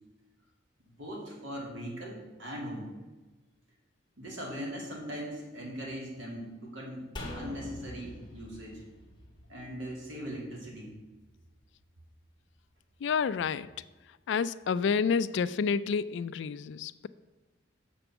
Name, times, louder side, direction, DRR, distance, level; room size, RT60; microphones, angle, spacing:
voice 1, 1.0-2.9 4.2-8.8 9.5-10.9, equal, 75° right, 2.5 m, -40 dB
sound 1, 7.2-10.5 10.8-10.9, left 1 dB, 20° left, 1.5 m, -44 dB
voice 2, 13.0-13.7 14.3-17.1, left 6 dB, 65° left, 0.3 m, -29 dB
6.8 x 5.2 x 7.1 m
head